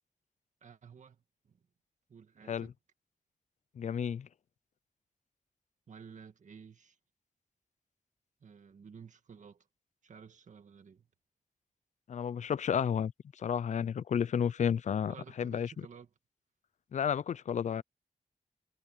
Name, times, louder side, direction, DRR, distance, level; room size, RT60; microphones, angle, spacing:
voice 1, 0.6-1.6 2.1-2.7 5.9-7.0 8.4-9.7 10.0-11.1 15.1-16.1, right 6 dB, 65° right, 1.9 m, -53 dB
voice 2, 3.8-4.3 12.1-15.9 16.9-17.8, left 8 dB, 60° left, 0.4 m, -32 dB
wide cardioid pair, 165°, 14 cm